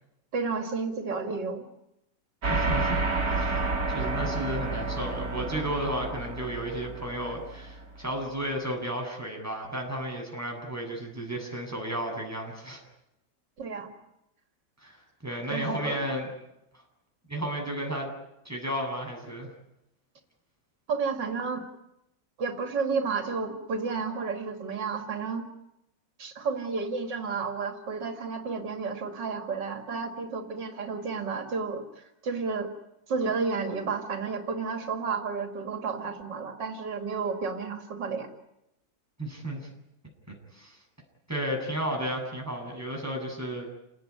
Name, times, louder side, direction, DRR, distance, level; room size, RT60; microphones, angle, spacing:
voice 1, 0.3-1.6 13.6-13.9 15.5-16.0 20.9-21.6 22.4-25.4 26.2-32.7 33.1-38.3, right 4 dB, 90° right, 5 dB, 3.1 m, -31 dB
sound 1, 2.4-8.2, right 3 dB, 55° right, 3.4 m, -30 dB
voice 2, 2.5-3.0 3.3-12.8 14.8-15.0 15.2-16.3 17.3-18.1 18.4-19.5 39.2-39.7 40.5-40.8 41.3-43.7, right 1 dB, 10° right, 0 dB, 7.9 m, -33 dB
29.5 x 19.0 x 10.0 m, 0.87 s
omnidirectional pair, 1.9 m